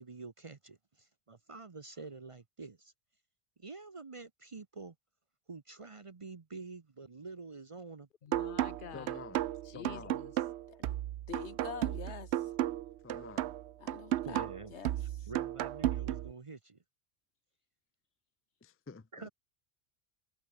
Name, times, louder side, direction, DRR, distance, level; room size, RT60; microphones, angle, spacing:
voice 1, 0.0-2.9 3.6-4.9 5.5-8.1 14.2-14.7 15.3-16.8 19.1-19.3, right 4 dB, 35° right, 0.7 m, -47 dB
voice 2, 8.2-10.3, left 8 dB, 55° left, 0.9 m, -49 dB
sound 1, 8.3-16.3, right 13 dB, 80° right, 0.9 m, -34 dB
voice 3, 8.9-9.4 9.7-10.2 13.0-13.5 18.6-19.3, left 4 dB, 20° left, 0.4 m, -49 dB
voice 4, 11.3-12.3 13.8-15.3, left 6 dB, 90° left, 1.7 m, -46 dB
omnidirectional pair, 1.1 m